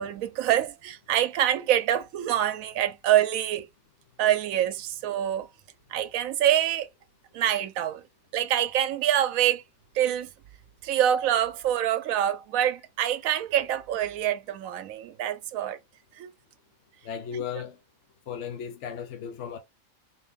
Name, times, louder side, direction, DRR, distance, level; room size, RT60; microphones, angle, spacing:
voice 1, 0.0-3.7 4.2-5.5 5.9-6.9 7.3-8.0 8.3-9.6 9.9-10.3 10.8-15.8 16.2-16.3, right 11 dB, 80° right, 1.0 m, -25 dB
voice 2, 17.0-17.8 18.3-19.6, left 8 dB, 65° left, 0.9 m, -35 dB
3.9 x 2.5 x 3.4 m
omnidirectional pair, 1.4 m